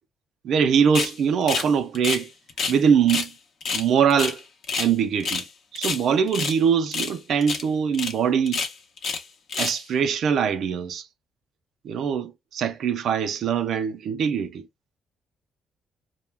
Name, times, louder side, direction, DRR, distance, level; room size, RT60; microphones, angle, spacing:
voice 1, 0.4-2.3 2.7-3.3 3.7-4.4 4.8-5.4 5.7-8.6 9.6-11.1 11.8-14.7, right 7 dB, 70° right, 0.4 m, -22 dB
sound 1, 0.9-1.1 1.5-2.8 3.1-3.3 3.6-4.9 5.2-5.5 5.7-6.6 6.9-7.2 7.4-7.6 7.9-8.1 8.5-9.2 9.5-9.8, left 5 dB, 60° left, 0.7 m, -28 dB
2.2 x 2.1 x 3.2 m
cardioid pair, 90°, 0 cm